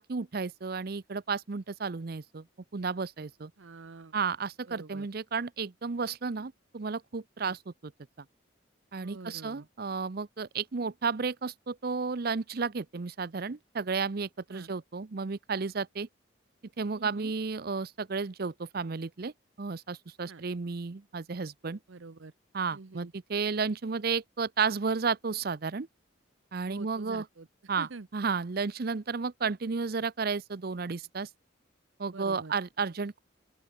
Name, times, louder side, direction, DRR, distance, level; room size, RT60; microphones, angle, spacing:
voice 1, 0.0-2.4 2.7-3.5 4.1-7.9 8.9-16.1 16.8-19.3 19.6-21.8 22.5-25.9 26.5-27.2 27.7-31.3 32.0-33.2, right 5 dB, 50° right, 0.6 m, -32 dB
voice 2, 3.6-4.1 4.7-5.1 7.4-7.6 9.0-9.7 14.5-14.7 16.9-17.3 20.3-20.4 21.9-22.3 22.7-23.1 26.7-27.5 27.8-28.1 32.1-32.5, right 3 dB, 80° right, 0.8 m, -46 dB
open air
head